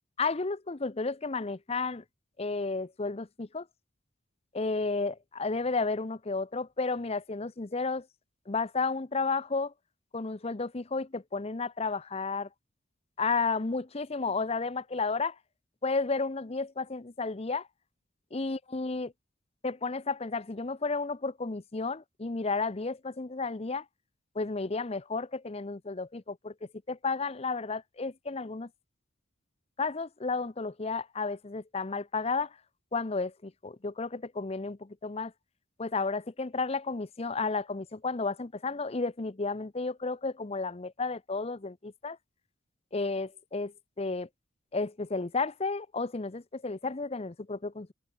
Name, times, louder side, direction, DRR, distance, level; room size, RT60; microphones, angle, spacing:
voice 1, 0.2-2.0 2.4-3.7 4.5-8.1 8.5-9.7 10.1-12.5 13.2-15.4 15.8-17.7 18.3-19.1 19.6-23.8 24.3-26.5 26.9-28.7 29.8-32.6 32.9-35.3 35.8-42.2 42.9-44.3 44.7-47.9, left 4 dB, 30° left, 0.7 m, -32 dB
head